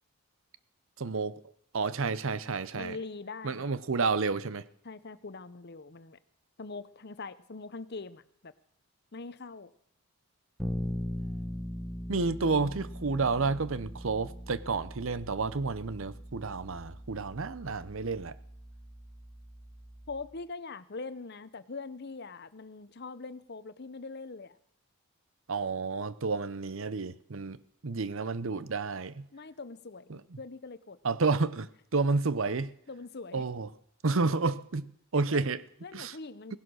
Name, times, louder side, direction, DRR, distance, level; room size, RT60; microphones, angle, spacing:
voice 1, 1.0-1.4 1.7-3.0 3.4-4.6 12.1-18.3 25.5-27.6 27.8-29.2 30.1-30.2 31.0-32.7 33.3-33.7 34.0-34.9 35.1-35.6 35.9-36.1, right 4 dB, 65° right, 0.7 m, -30 dB
voice 2, 2.7-3.7 4.8-6.2 6.6-8.5 9.1-9.7 20.1-24.6 29.3-31.0 32.9-33.5 35.1-36.6, left 3 dB, 50° left, 0.8 m, -43 dB
Bass guitar, 10.6-20.4, equal, ahead, 0.9 m, -40 dB
18.0 x 11.0 x 6.3 m
head